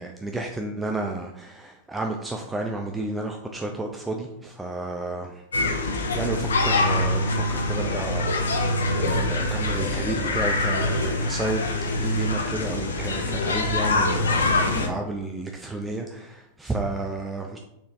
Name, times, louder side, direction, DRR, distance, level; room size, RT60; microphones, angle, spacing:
voice 1, 0.0-5.3 6.1-8.3 8.9-17.6, right 2 dB, 10° right, 2 dB, 0.3 m, -31 dB
sound 1, 5.5-14.9, left 2 dB, 70° left, 0.5 m, -24 dB
4.1 x 3.2 x 2.4 m, 0.83 s
figure-of-eight pair, 90°, 0 cm